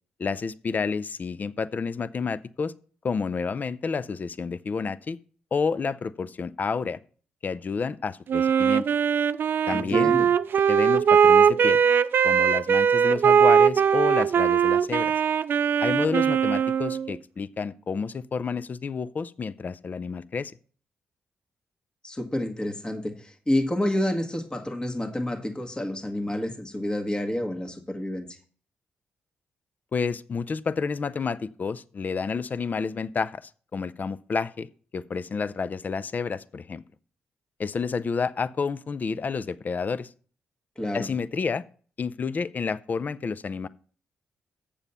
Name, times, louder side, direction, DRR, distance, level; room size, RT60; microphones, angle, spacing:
voice 1, 0.2-2.7 3.0-5.2 5.5-7.0 7.4-8.9 9.7-10.1 10.7-11.8 12.2-15.1 15.8-20.5 29.9-34.7 34.9-36.8 37.6-40.1 40.9-41.6 42.0-43.7, left 5 dB, 45° left, 0.5 m, -30 dB
Wind instrument woodwind instrument, 8.3-17.1, right 7 dB, 60° right, 0.4 m, -20 dB
voice 2, 9.7-10.3 22.0-28.4 40.7-41.1, left 1 dB, 20° left, 1.4 m, -29 dB
7.2 x 6.9 x 5.5 m
supercardioid pair, 55°, 4 cm